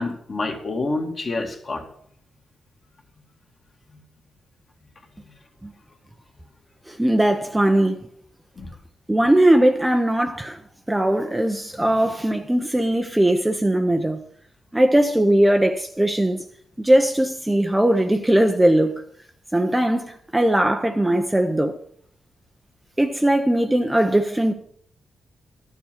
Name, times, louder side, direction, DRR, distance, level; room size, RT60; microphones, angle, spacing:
voice 1, 0.0-1.9 3.9-4.0 8.6-8.7, left 2 dB, 35° left, 2.0 m, -28 dB
voice 2, 6.9-8.1 9.1-10.6 10.9-14.2 14.7-16.4 16.8-19.0 19.5-21.8 23.0-24.5, right 1 dB, 10° right, 0.7 m, -19 dB
12.5 x 7.1 x 5.9 m
wide cardioid pair, 130°, 0 cm